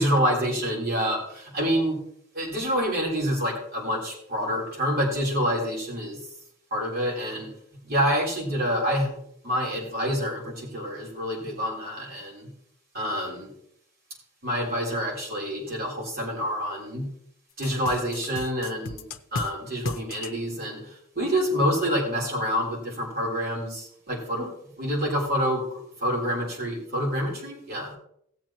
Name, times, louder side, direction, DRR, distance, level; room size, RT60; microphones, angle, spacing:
voice 1, 0.0-2.0 2.3-6.2 6.7-7.5 7.8-9.1 9.4-12.5 12.9-13.5 14.4-17.1 17.6-24.5 24.8-27.9, equal, 45° right, -3 dB, 3.6 m, -27 dB
sound 1, 17.6-19.5 19.9-20.3, left 3 dB, 75° left, 0.7 m, -34 dB
17.5 x 7.5 x 3.0 m, 0.70 s
head